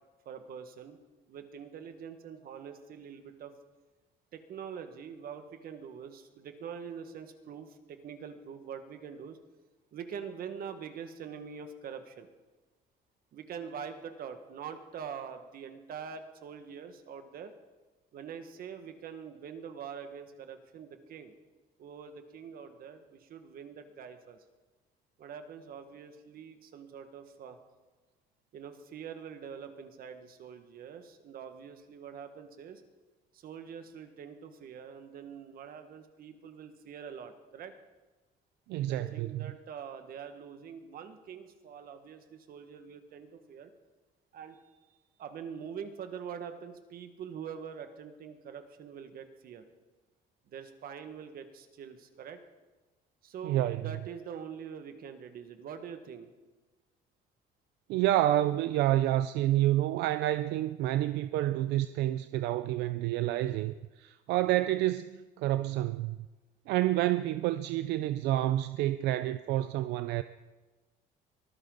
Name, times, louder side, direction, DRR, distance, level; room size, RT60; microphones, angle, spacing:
voice 1, 0.3-1.0 1.3-3.5 4.3-9.4 9.9-12.3 13.3-17.5 18.1-21.3 21.8-24.4 25.2-27.6 28.5-32.8 33.3-37.7 38.8-43.7 44.3-44.6 45.2-49.6 50.5-52.4 53.2-56.3, right 7 dB, 60° right, 1.7 m, -44 dB
voice 2, 38.7-39.4 53.4-53.8 57.9-66.2 66.7-70.2, right 14 dB, 85° right, 0.5 m, -29 dB
23.5 x 14.5 x 4.0 m
cardioid pair, 110°, 17 cm